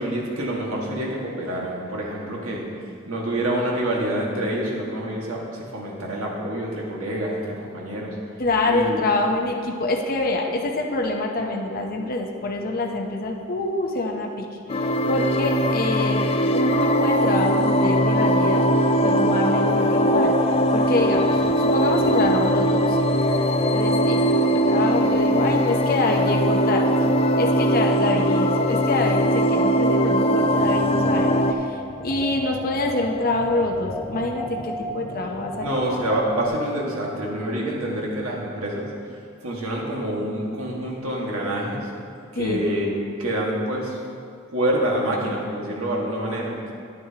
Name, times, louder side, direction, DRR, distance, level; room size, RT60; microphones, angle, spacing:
voice 1, 0.0-2.6 3.0-8.1 8.7-9.0 35.6-38.9 39.4-41.8 42.3-44.0 44.5-46.7, right 1 dB, 70° right, -3 dB, 1.8 m, -27 dB
voice 2, 8.4-16.2 16.5-18.7 19.0-20.4 20.7-23.0 23.7-24.2 24.5-26.9 27.3-35.8 42.4-42.7, left 2 dB, 45° left, 1 dB, 0.8 m, -26 dB
sound 1, 14.7-31.5, equal, 30° left, 0.4 m, -20 dB
sound 2, 30.5-36.5, equal, ahead, 0.8 m, -35 dB
10.5 x 9.5 x 2.9 m, 2.4 s
head